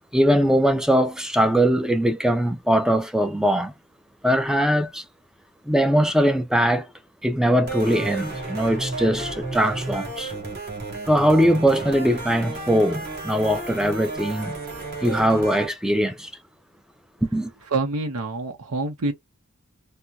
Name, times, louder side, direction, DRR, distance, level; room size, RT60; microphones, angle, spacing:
voice 1, 0.1-3.7 4.2-5.0 5.7-6.9 7.2-10.3 11.1-14.6 15.0-16.3 17.2-17.5, equal, 5° right, 0.5 m, -21 dB
sound 1, 7.7-15.7, right 3 dB, 45° right, 1.6 m, -32 dB
voice 2, 17.7-19.1, right 3 dB, 80° right, 0.8 m, -26 dB
4.2 x 2.2 x 2.3 m
head